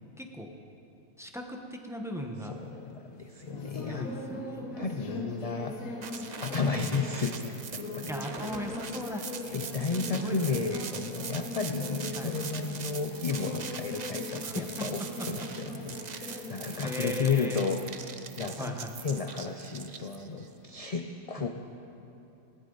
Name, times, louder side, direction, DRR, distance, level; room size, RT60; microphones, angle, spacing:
voice 1, 0.2-0.5 1.2-2.5 3.8-4.7 6.6-7.0 8.1-9.3 10.1-10.4 10.6-10.8 12.1-12.4 14.4-14.9 16.5-17.6 18.6-18.9 21.4-21.5, equal, ahead, 2 dB, 1.0 m, -38 dB
voice 2, 2.4-4.1 4.8-5.7 6.4-8.4 9.5-17.8 18.4-21.5, left 5 dB, 45° left, 5 dB, 0.5 m, -33 dB
sound 1, 2.5-21.0, left 2 dB, 90° left, 1.6 m, -42 dB
sound 2, 6.0-20.5, right 6 dB, 45° right, 0.6 m, -42 dB
19.5 x 17.0 x 4.0 m, 2.8 s
omnidirectional pair, 1.4 m